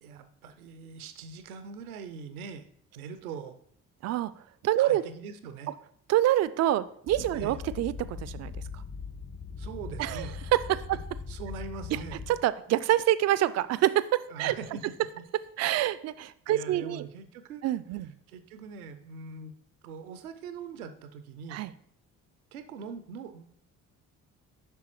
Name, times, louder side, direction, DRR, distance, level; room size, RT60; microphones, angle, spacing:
voice 1, 0.0-2.7 3.0-3.6 4.8-5.7 7.3-7.6 9.6-10.4 11.3-12.3 14.3-14.8 15.1-15.2 16.5-17.6 18.3-19.5 19.8-21.7 22.5-23.5, right 5 dB, 80° right, 10 dB, 0.6 m, -42 dB
voice 2, 4.6-5.0 6.1-8.5 10.0-10.3 10.5-11.0 11.9-12.0 12.3-14.5 15.6-17.0 17.6-18.1 21.5-21.7, right 13 dB, 40° right, 16 dB, 0.4 m, -26 dB
sound 1, 7.1-12.3, left 5 dB, 35° left, 1.3 m, -40 dB
7.6 x 5.6 x 3.0 m, 0.66 s
figure-of-eight pair, 45°, 43 cm